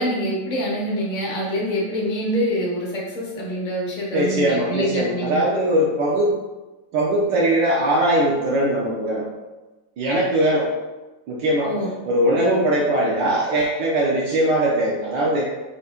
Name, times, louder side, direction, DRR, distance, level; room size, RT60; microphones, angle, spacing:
voice 1, 0.0-5.4 11.6-11.9, equal, 30° left, -3 dB, 0.9 m, -25 dB
voice 2, 4.1-6.3 6.9-9.3 10.0-10.7 11.3-11.7 12.0-15.4, right 1 dB, 70° right, -5 dB, 1.4 m, -20 dB
5.3 x 4.0 x 2.4 m, 1.1 s
omnidirectional pair, 2.1 m